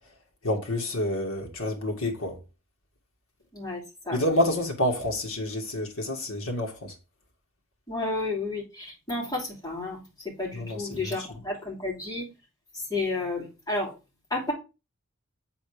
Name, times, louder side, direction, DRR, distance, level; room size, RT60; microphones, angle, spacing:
voice 1, 0.4-2.4 4.1-6.9 10.5-11.1, left 1 dB, 65° left, 2.0 m, -28 dB
voice 2, 7.9-12.3 12.7-13.9 14.3-14.5, left 2 dB, 15° left, 3.0 m, -31 dB
8.2 x 4.2 x 4.9 m
head